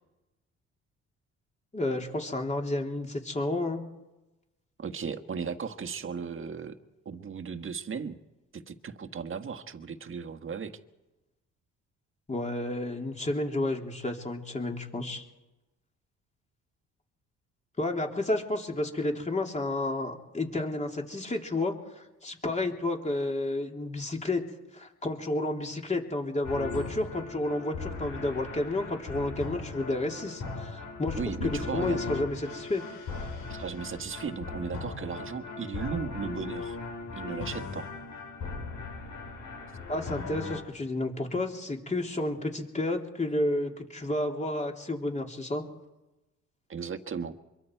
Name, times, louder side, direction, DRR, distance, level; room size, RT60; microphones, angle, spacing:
voice 1, 1.7-3.8 12.3-15.2 17.8-24.4 24.7-32.8 33.2-33.3 39.9-45.6, left 2 dB, 25° left, 2 dB, 3.2 m, -31 dB
voice 2, 4.8-6.8 7.0-8.2 8.5-10.8 31.2-32.0 33.5-36.8 37.1-37.9 46.7-47.4, right 6 dB, 45° right, 8 dB, 1.6 m, -36 dB
sound 1, 26.4-40.6, left 4 dB, 70° left, 5.7 m, -38 dB
25.0 x 22.5 x 4.7 m, 1.0 s
cardioid pair, 90°, 30 cm